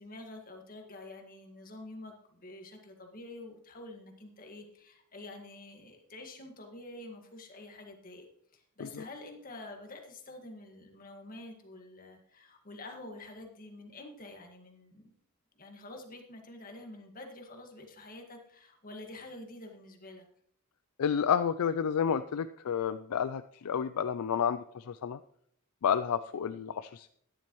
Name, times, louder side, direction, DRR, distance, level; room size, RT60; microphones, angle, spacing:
voice 1, 0.0-8.3 8.5-15.1 15.5-20.2, left 2 dB, 40° left, 3 dB, 1.8 m, -48 dB
voice 2, 21.0-25.2 25.8-27.1, left 7 dB, 85° left, 11 dB, 0.4 m, -30 dB
13.5 x 10.5 x 3.1 m, 0.66 s
head